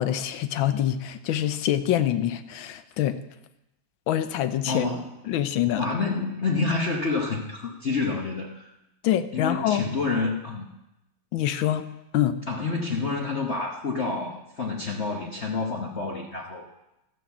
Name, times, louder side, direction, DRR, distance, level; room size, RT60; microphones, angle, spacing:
voice 1, 0.0-3.2 4.1-4.9 5.3-5.9 9.0-9.9 11.3-11.9 12.1-12.4, left 11 dB, 70° left, 11 dB, 1.4 m, -25 dB
voice 2, 4.7-5.1 5.7-8.7 9.3-10.7 12.5-16.6, left 3 dB, 45° left, 0 dB, 1.0 m, -28 dB
14.0 x 6.4 x 7.1 m, 0.91 s
omnidirectional pair, 2.4 m